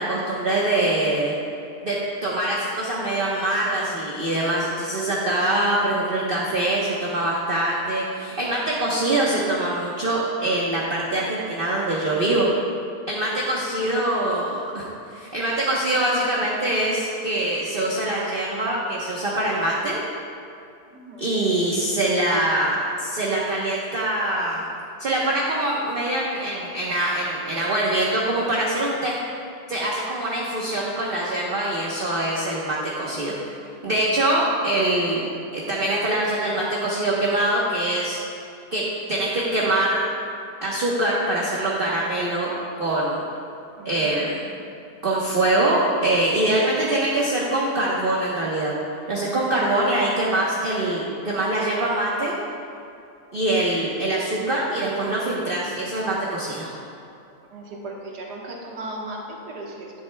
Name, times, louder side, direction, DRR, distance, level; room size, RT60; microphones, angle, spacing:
voice 1, 0.0-1.3 1.8-12.5 13.1-20.0 21.2-24.7 25.0-29.2 29.7-33.3 33.8-35.2 35.5-38.2 38.7-38.8 39.1-40.1 40.6-42.5 42.8-43.2 43.8-44.4 45.0-48.7 49.1-52.4 53.3-56.7, right 1 dB, 40° right, -5 dB, 1.1 m, -24 dB
voice 2, 13.7-14.4 20.9-21.3 43.8-44.3 57.5-59.9, right 2 dB, 80° right, -2 dB, 1.9 m, -37 dB
12.0 x 11.0 x 2.3 m, 2.5 s
omnidirectional pair, 1.7 m